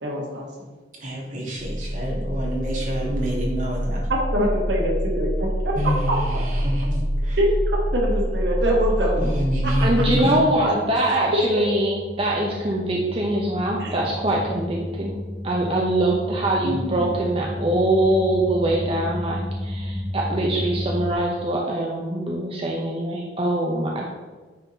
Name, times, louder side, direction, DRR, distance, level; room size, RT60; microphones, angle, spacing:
voice 1, 0.0-0.7 4.3-5.8 6.1-6.2 7.4-9.2 9.6-10.0 10.7-10.8 13.8-13.9 16.6-17.1, equal, 80° right, -1 dB, 1.6 m, -25 dB
voice 2, 1.0-4.1 5.7-7.4 9.2-10.4, equal, 50° right, -4 dB, 2.4 m, -27 dB
sound 1, 1.6-21.1, equal, 5° left, 0.8 m, -28 dB
voice 3, 9.8-15.1 15.4-24.0, right 1 dB, 35° right, -1 dB, 0.8 m, -23 dB
9.4 x 4.1 x 4.1 m, 1.3 s
head